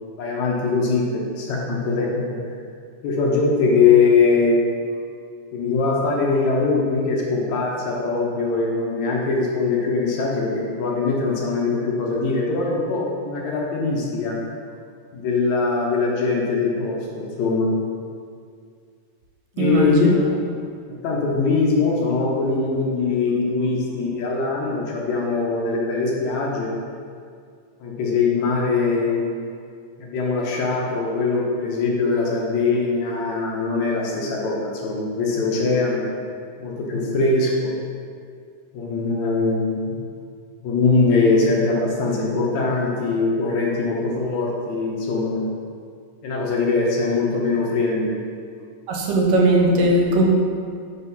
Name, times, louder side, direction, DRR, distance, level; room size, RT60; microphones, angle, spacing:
voice 1, 0.2-2.4 3.0-4.6 5.5-14.4 15.1-17.7 19.5-20.1 21.0-26.7 27.8-29.3 30.0-36.1 36.6-37.8 38.7-39.9 40.6-45.5 46.2-48.2, left 4 dB, 70° left, -2 dB, 1.9 m, -22 dB
voice 2, 19.6-20.1 48.9-50.2, right 1 dB, 80° right, 0 dB, 2.4 m, -18 dB
5.2 x 4.1 x 5.4 m, 2.2 s
omnidirectional pair, 3.9 m